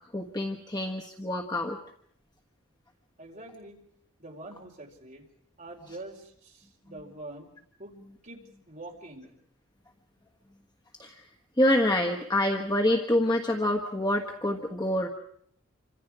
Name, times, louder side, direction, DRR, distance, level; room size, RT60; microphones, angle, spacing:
voice 1, 0.0-1.8 11.0-11.2 11.6-15.1, left 1 dB, 20° left, 1 dB, 1.4 m, -26 dB
voice 2, 3.2-3.8 4.2-5.3 5.6-7.5 7.8-7.9 8.2-9.3, right 2 dB, 40° right, 1 dB, 4.5 m, -45 dB
28.0 x 25.0 x 4.9 m, 0.66 s
head